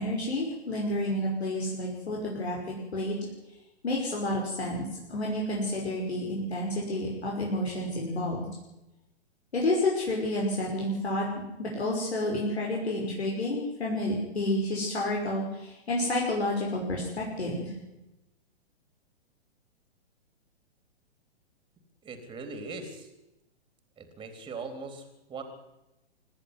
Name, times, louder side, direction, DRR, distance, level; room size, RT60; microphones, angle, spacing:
voice 1, 0.0-3.2 3.8-4.8 5.1-8.5 9.5-11.3 11.6-17.7, left 1 dB, 70° left, -2 dB, 5.9 m, -30 dB
voice 2, 22.0-23.1 24.0-25.4, right 4 dB, 15° right, 7 dB, 3.5 m, -40 dB
24.5 x 11.0 x 9.8 m, 0.93 s
figure-of-eight pair, 120°, 34 cm